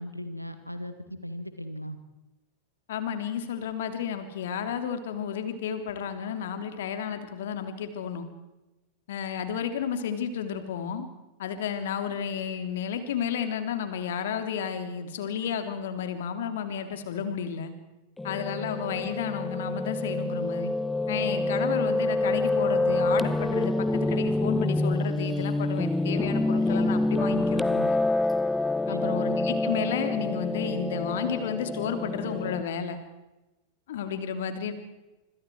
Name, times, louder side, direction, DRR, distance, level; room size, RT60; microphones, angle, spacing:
voice 1, 0.0-2.0 28.9-29.1, equal, 90° right, 10 dB, 1.8 m, -38 dB
voice 2, 2.9-8.3 9.1-11.1 11.4-17.7 18.2-20.7 21.1-28.0 28.9-33.0 33.9-34.7, left 7 dB, 60° left, 8 dB, 3.0 m, -32 dB
Piano, 18.2-32.6, left 2 dB, 5° left, 0.7 m, -27 dB
26.5 x 25.5 x 4.7 m, 1.0 s
figure-of-eight pair, 90°, 0 cm